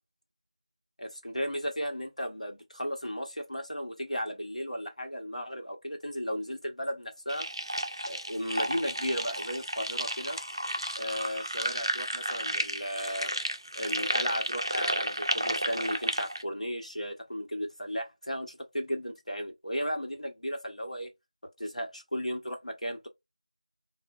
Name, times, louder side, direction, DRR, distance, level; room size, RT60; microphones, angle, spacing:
voice 1, 1.0-7.5 8.1-10.4 11.0-13.3 13.7-21.1 21.6-23.1, equal, 90° left, 0.9 m, -35 dB
sound 1, 7.3-16.4, right 1 dB, 40° right, 0.3 m, -32 dB
3.5 x 2.1 x 2.2 m
figure-of-eight pair, 180°, 4 cm